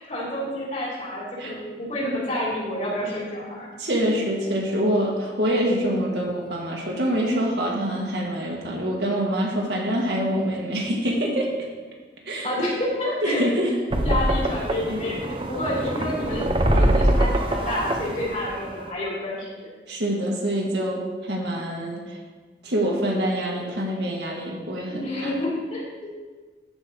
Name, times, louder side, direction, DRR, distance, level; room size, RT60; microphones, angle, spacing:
voice 1, 0.1-3.7 12.4-13.4 14.0-19.5 24.9-25.8, left 1 dB, 40° left, -6 dB, 3.4 m, -29 dB
voice 2, 3.8-11.5 12.2-12.5 13.2-13.7 14.9-15.0 19.9-22.0 22.6-25.3, equal, 75° right, -2 dB, 1.9 m, -25 dB
sound 1, 13.9-18.9, right 1 dB, 30° right, 0.7 m, -23 dB
14.0 x 5.4 x 4.0 m, 1.4 s
head